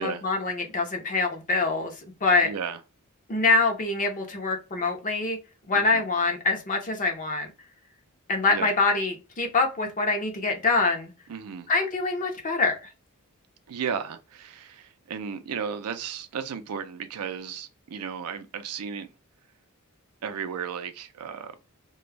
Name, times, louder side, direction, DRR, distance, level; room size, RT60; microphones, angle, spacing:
voice 1, 0.0-1.9 2.2-2.5 3.3-5.4 5.7-7.5 8.3-11.1 11.7-12.8, left 3 dB, 35° left, 0.6 m, -25 dB
voice 2, 2.4-2.8 5.7-6.1 8.5-8.7 11.3-11.7 13.7-19.1 20.2-21.5, right 7 dB, 80° right, 0.4 m, -34 dB
2.2 x 2.0 x 3.2 m
head